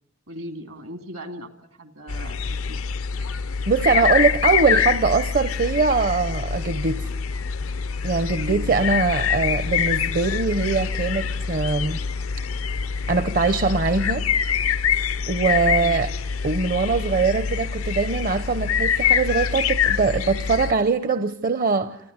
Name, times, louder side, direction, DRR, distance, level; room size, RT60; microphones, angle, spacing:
voice 1, 0.3-1.5 1.8-2.4 2.7-3.0 8.3-8.9 15.7-16.1, equal, 75° right, 2.2 m, -37 dB
sound 1, 2.1-20.7, left 7 dB, 85° left, 0.7 m, -25 dB
voice 2, 3.7-7.1 8.0-12.0 13.1-14.2 15.3-16.1 16.4-22.0, right 4 dB, 45° right, 0.7 m, -22 dB
28.0 x 10.0 x 9.4 m
head